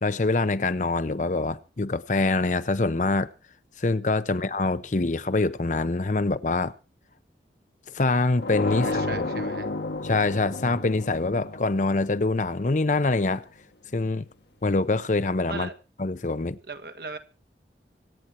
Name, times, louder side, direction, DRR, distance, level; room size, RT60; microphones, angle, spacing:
voice 1, 0.0-3.3 3.8-6.7 7.9-9.2 10.0-13.4 13.9-14.3 14.6-15.7 16.0-16.6, left 3 dB, 45° left, 0.7 m, -25 dB
sound 1, 8.4-13.1, left 2 dB, 70° left, 1.5 m, -32 dB
voice 2, 8.8-9.7 15.5-15.7 16.7-17.2, right 4 dB, 60° right, 1.5 m, -38 dB
25.0 x 8.9 x 4.4 m
head